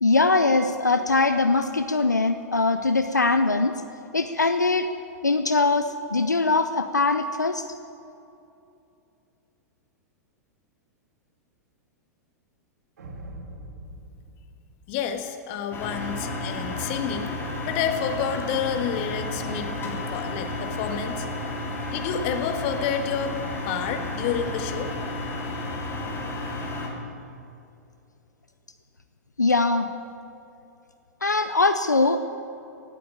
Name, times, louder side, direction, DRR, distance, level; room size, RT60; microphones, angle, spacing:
voice 1, 0.0-3.8 4.1-4.9 5.2-7.7 29.4-29.9 31.2-32.2, left 3 dB, 90° left, 9 dB, 0.6 m, -22 dB
sound 1, 13.0-15.5, right 1 dB, 65° right, 2.1 m, -43 dB
voice 2, 14.9-17.3 17.6-21.3 21.9-23.3 23.7-24.9, left 7 dB, 45° left, 7 dB, 1.6 m, -29 dB
sound 2, 15.7-26.9, left 2 dB, 25° left, 3.4 m, -32 dB
17.5 x 8.5 x 8.7 m, 2.7 s
figure-of-eight pair, 100°, 9 cm